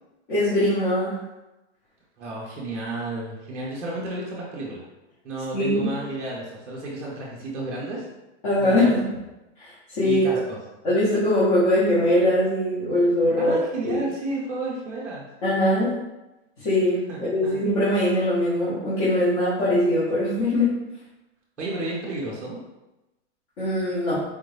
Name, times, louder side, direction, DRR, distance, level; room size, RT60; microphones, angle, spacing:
voice 1, 0.3-1.2 5.5-5.9 8.4-9.1 9.6-10.2 10.8-13.6 13.8-14.0 15.4-16.0 16.6-20.8 23.6-24.2, left 1 dB, 45° left, -10 dB, 1.3 m, -22 dB
voice 2, 2.2-4.8 5.2-8.0 8.6-9.0 10.0-10.6 13.4-15.2 17.1-17.6 21.6-22.6, right 2 dB, 5° right, -9 dB, 0.5 m, -32 dB
4.2 x 2.6 x 3.4 m, 1.0 s
supercardioid pair, 175°, 35 cm